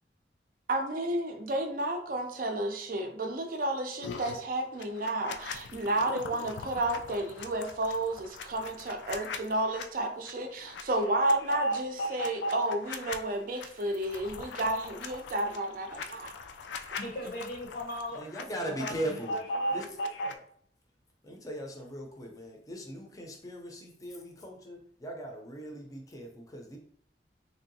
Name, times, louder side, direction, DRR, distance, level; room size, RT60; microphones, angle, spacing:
voice 1, 0.7-16.3 16.9-17.0, right 1 dB, 50° right, 5 dB, 0.5 m, -32 dB
sound 1, 4.0-4.4 4.8-9.9 10.3-10.4 10.7-13.2 13.6-18.4 18.7-20.3, left 1 dB, 90° left, 0.3 m, -37 dB
voice 2, 17.0-18.2 18.7-20.4, left 1 dB, 70° left, -2 dB, 0.7 m, -40 dB
voice 3, 18.2-19.3 19.7-19.8 21.2-26.8, right 1 dB, 20° left, 2 dB, 0.5 m, -39 dB
3.4 x 2.7 x 2.6 m, 0.62 s
head